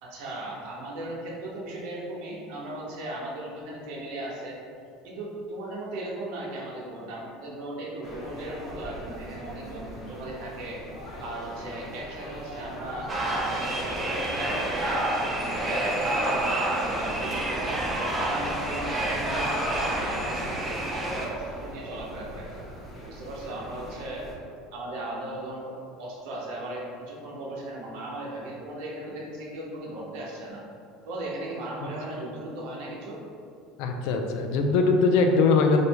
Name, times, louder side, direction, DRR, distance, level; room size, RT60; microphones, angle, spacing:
voice 1, 0.0-4.6 5.0-10.8 11.2-13.1 13.4-17.8 18.2-22.5 23.0-24.3 24.7-30.6 31.0-33.2, right 1 dB, 60° right, -3 dB, 0.9 m, -37 dB
sound 1, 8.0-24.3, equal, 15° left, 0.9 m, -41 dB
sound 2, 13.1-21.3, right 1 dB, 15° right, 0.5 m, -28 dB
voice 2, 33.8-35.8, left 4 dB, 65° left, 4 dB, 0.4 m, -21 dB
3.2 x 2.7 x 4.5 m, 2.5 s
cardioid pair, 165°, 0 cm